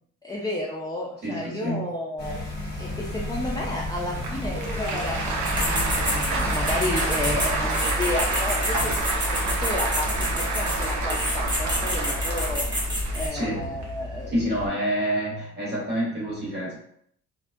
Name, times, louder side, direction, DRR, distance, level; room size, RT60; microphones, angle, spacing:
voice 1, 0.2-2.3 2.8-5.2 5.5-12.6 13.1-14.8, left 1 dB, 15° left, -4 dB, 0.4 m, -32 dB
voice 2, 1.2-1.9 13.3-13.6 14.3-16.8, equal, 35° right, -4 dB, 1.3 m, -28 dB
sound 1, 2.2-7.7, left 1 dB, 35° left, 1.1 m, -32 dB
Applause, 4.1-14.7, right 3 dB, 70° right, 0.6 m, -29 dB
sound 2, 5.4-13.3, equal, 15° right, 0.8 m, -28 dB
2.3 x 2.2 x 2.5 m, 0.67 s
cardioid pair, 90°, 30 cm